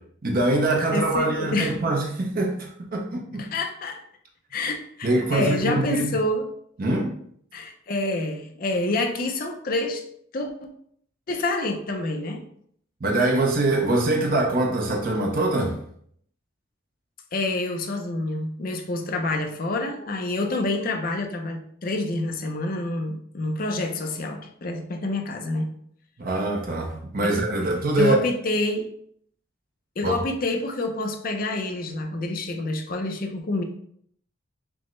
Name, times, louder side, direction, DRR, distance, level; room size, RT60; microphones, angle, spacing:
voice 1, 0.2-3.4 5.0-6.1 6.8-7.1 13.0-15.8 26.2-28.2 30.0-30.2, right 2 dB, 45° right, 0.6 m, -23 dB
voice 2, 0.9-1.7 3.4-4.0 4.5-6.5 7.5-10.0 10.3-10.7 11.3-12.4 17.3-25.7 27.2-27.4 28.0-28.9 30.0-33.6, left 2 dB, 45° left, 0.5 m, -27 dB
6.0 x 2.1 x 3.1 m
head